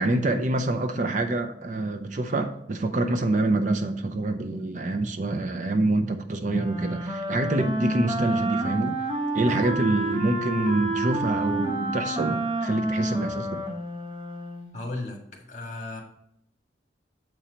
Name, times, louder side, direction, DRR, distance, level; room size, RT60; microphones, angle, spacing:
voice 1, 0.0-9.0 9.3-13.6, right 2 dB, 45° right, 6 dB, 0.5 m, -26 dB
Wind instrument woodwind instrument, 6.5-14.7, right 2 dB, 25° right, 1.3 m, -29 dB
voice 2, 9.4-9.8 14.7-16.0, left 2 dB, 40° left, 1 dB, 1.6 m, -35 dB
7.5 x 4.3 x 5.0 m, 0.75 s
head